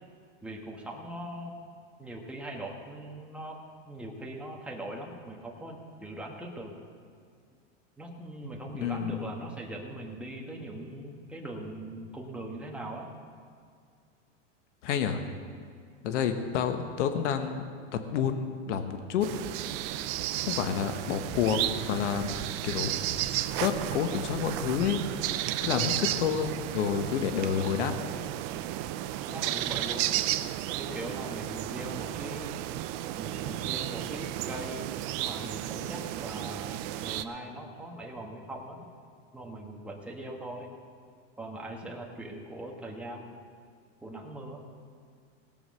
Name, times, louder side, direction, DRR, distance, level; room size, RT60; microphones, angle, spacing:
voice 1, 0.4-1.5 2.0-6.7 8.0-13.1 29.1-30.1 30.7-32.6 33.2-34.8 35.1-36.7 37.0-38.8 39.3-40.7 41.4-43.3 44.0-44.6, right 1 dB, 5° right, -2 dB, 1.7 m, -40 dB
voice 2, 8.8-9.3 14.8-15.2 16.0-17.6 17.9-19.3 20.5-21.6 21.9-22.3 22.6-22.9 23.6-25.0 25.6-27.9, left 8 dB, 75° left, 7 dB, 1.4 m, -29 dB
sound 1, 19.2-37.2, right 14 dB, 40° right, 0.5 m, -33 dB
19.0 x 6.4 x 6.3 m, 2.2 s
supercardioid pair, 135°, 37 cm